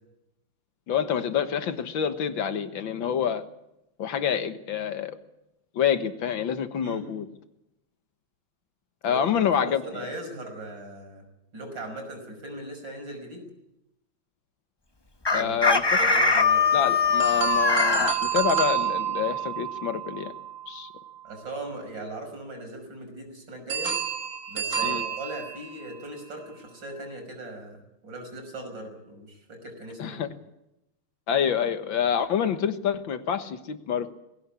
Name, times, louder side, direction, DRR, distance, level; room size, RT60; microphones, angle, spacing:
voice 1, 0.9-3.5 4.0-5.2 5.7-7.3 9.0-10.1 15.3-15.8 16.7-20.3 20.7-20.9 24.8-25.0 30.0-30.3 31.3-34.1, left 8 dB, 70° left, 9 dB, 2.1 m, -27 dB
voice 2, 9.6-11.2 11.5-13.5 15.3-15.6 15.9-16.6 21.2-24.0 24.5-30.3, right 1 dB, 65° right, 4 dB, 6.3 m, -39 dB
Chicken rooster, 15.3-18.1, left 4 dB, 20° left, 0.6 m, -21 dB
sound 1, 17.2-21.3 23.7-26.0, right 9 dB, 45° right, 1.7 m, -30 dB
20.5 x 17.0 x 8.5 m, 0.87 s
omnidirectional pair, 2.2 m